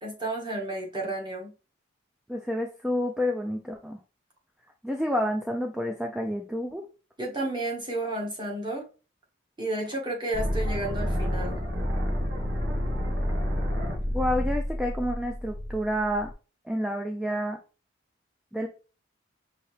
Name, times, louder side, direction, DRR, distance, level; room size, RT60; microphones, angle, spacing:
voice 1, 0.0-1.5 7.2-8.9 9.6-11.6, right 2 dB, 25° right, -1 dB, 1.4 m, -32 dB
voice 2, 2.3-4.0 4.8-6.8 14.1-16.3 16.6-17.6 18.5-18.7, equal, 5° right, 3 dB, 0.4 m, -29 dB
sound 1, 10.3-16.3, equal, 65° right, 1.3 m, -29 dB
5.6 x 2.8 x 3.2 m, 0.34 s
head